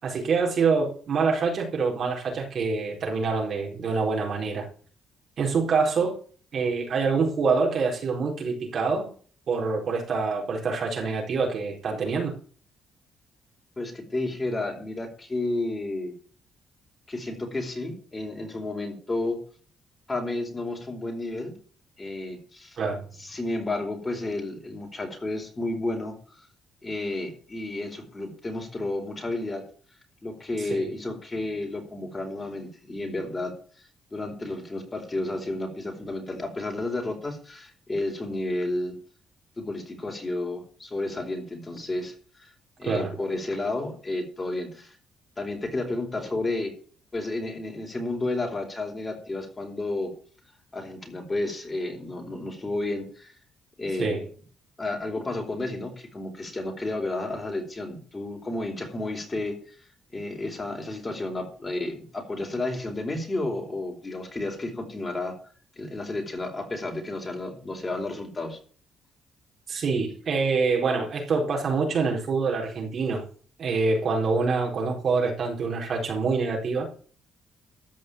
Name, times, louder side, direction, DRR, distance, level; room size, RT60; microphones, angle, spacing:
voice 1, 0.0-4.7 5.4-6.2 6.5-9.1 9.5-12.4 22.8-23.0 30.7-30.9 42.8-43.2 54.0-54.3 69.7-73.3 73.6-76.9, right 4 dB, 55° right, 4.3 m, -26 dB
voice 2, 13.8-16.1 17.1-19.4 20.1-21.5 22.0-22.8 23.2-26.1 26.8-29.6 30.2-39.0 39.6-42.5 42.8-44.9 45.4-46.7 47.1-50.1 50.7-53.3 53.8-54.1 54.8-59.6 60.1-65.3 65.8-68.6, left 2 dB, 25° left, 4.7 m, -31 dB
14.0 x 5.6 x 9.0 m
cardioid pair, 90°, 0 cm